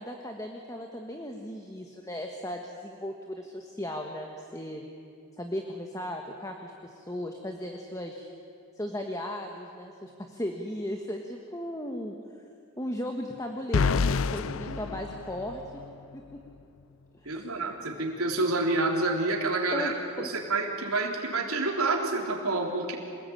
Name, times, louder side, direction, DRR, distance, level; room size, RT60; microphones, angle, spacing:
voice 1, 0.0-4.8 5.4-8.3 8.8-12.1 12.8-15.6 16.1-16.2 17.1-17.5 19.7-19.9 20.2-20.3, left 1 dB, 15° left, 3 dB, 1.4 m, -36 dB
sound 1, 13.7-15.9, left 5 dB, 65° left, 0.5 m, -28 dB
voice 2, 14.7-15.0 17.2-23.0, right 2 dB, 75° right, 1 dB, 3.8 m, -28 dB
27.0 x 19.5 x 8.8 m, 2.5 s
head